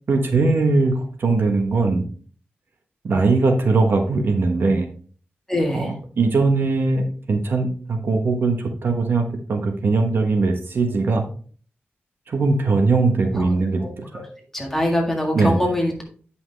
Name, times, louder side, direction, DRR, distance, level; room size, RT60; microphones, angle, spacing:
voice 1, 0.1-2.1 3.0-4.9 5.7-11.2 12.3-14.2 15.3-15.6, right 3 dB, 60° right, 4 dB, 1.1 m, -20 dB
voice 2, 5.5-5.9 13.4-13.6 13.8-14.2 14.5-16.0, left 1 dB, 10° left, 0 dB, 1.8 m, -23 dB
9.5 x 5.7 x 3.3 m, 0.43 s
wide cardioid pair, 170°, 4 cm